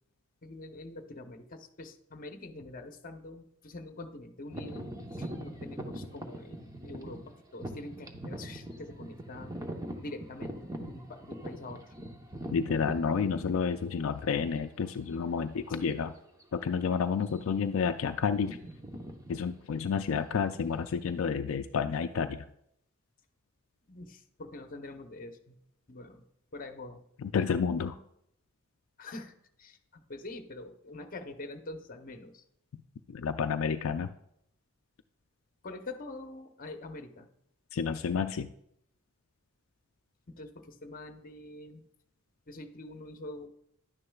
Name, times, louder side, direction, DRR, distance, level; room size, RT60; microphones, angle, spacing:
voice 1, 0.4-4.9 5.1-9.6 10.0-10.6 10.8-11.9 15.7-16.0 23.9-25.6 25.9-26.2 26.5-27.0 29.0-32.4 35.6-37.3 40.3-41.8 42.5-43.5, left 2 dB, 45° left, 6 dB, 0.9 m, -45 dB
sound 1, 4.5-14.3 14.9-15.0 15.7-15.9 16.2-16.4 17.1-17.6 17.9-21.3, right 1 dB, 15° right, 0.9 m, -42 dB
voice 2, 12.5-16.1 16.5-18.6 19.3-22.4 27.2-27.9 33.1-34.1 37.7-38.5, left 6 dB, 80° left, 7 dB, 0.4 m, -30 dB
11.0 x 9.6 x 2.3 m, 0.75 s
head